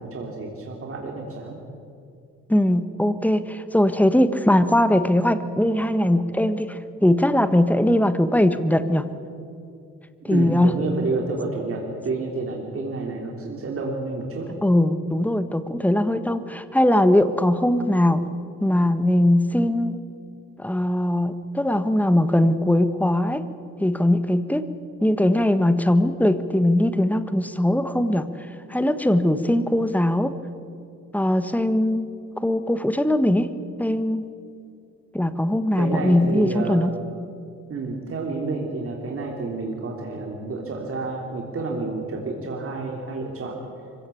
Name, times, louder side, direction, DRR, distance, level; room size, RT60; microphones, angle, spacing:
voice 1, 0.0-1.6 10.3-14.6 35.7-36.8 37.7-43.6, right 3 dB, 45° right, 0 dB, 3.4 m, -29 dB
voice 2, 2.5-9.0 10.3-10.8 14.6-18.2 18.6-20.0 20.6-23.4 23.8-24.6 25.0-28.3 28.7-30.3 31.1-32.1 32.4-33.5 33.8-34.3 35.1-36.9, left 1 dB, 5° left, 11 dB, 1.4 m, -20 dB
25.0 x 16.5 x 8.6 m, 2.5 s
cardioid pair, 90°, 30 cm